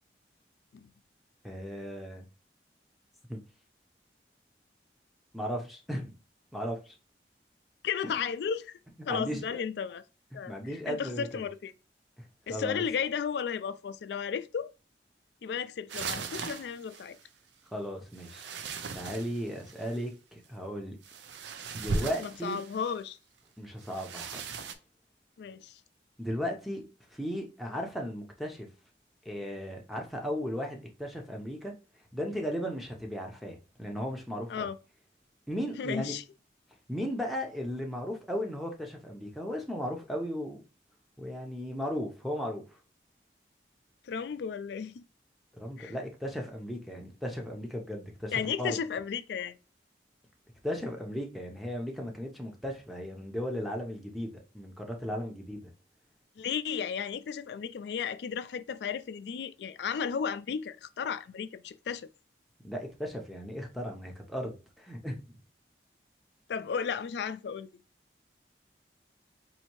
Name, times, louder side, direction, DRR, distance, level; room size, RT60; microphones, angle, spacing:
voice 1, 1.4-2.2 3.3-3.4 5.3-6.1 6.5-6.9 8.0-8.3 9.1-9.6 10.3-11.3 12.5-12.8 17.7-18.5 18.9-21.0 21.7-22.6 23.6-24.6 26.2-26.8 27.1-28.7 29.2-31.7 32.1-34.7 35.5-36.1 36.9-40.6 41.2-42.6 45.6-48.8 50.6-55.6 62.6-65.4, equal, ahead, 0.7 m, -36 dB
voice 2, 7.8-8.7 9.1-10.0 10.3-11.7 12.5-14.7 15.4-17.2 22.2-23.2 25.4-25.8 34.5-34.8 35.8-36.2 44.0-45.0 45.8-45.9 48.3-49.6 56.4-62.1 66.5-67.7, left 7 dB, 75° left, 0.3 m, -34 dB
sound 1, 15.9-17.2 18.1-20.0 21.0-22.9 23.8-24.7, right 4 dB, 85° right, 0.5 m, -38 dB
4.1 x 2.7 x 3.0 m
head